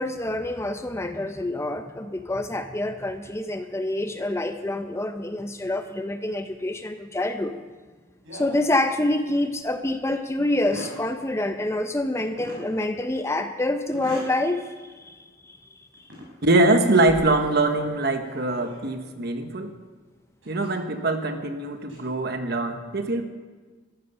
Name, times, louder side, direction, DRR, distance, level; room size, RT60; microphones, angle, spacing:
voice 1, 0.0-7.6 8.3-15.6 15.9-16.0, left 1 dB, 15° left, 8 dB, 0.5 m, -27 dB
sound 1, 8.2-9.3 9.8-9.9 10.5-11.0 12.4-12.6 13.9-14.4 14.9-15.0 15.9-16.3 16.7-19.0 20.4-20.7 21.6-22.0, equal, 70° right, 5.4 m, -41 dB
voice 2, 16.4-19.7 20.5-23.2, right 2 dB, 50° right, 7 dB, 1.2 m, -23 dB
14.0 x 12.5 x 5.5 m, 1.3 s
head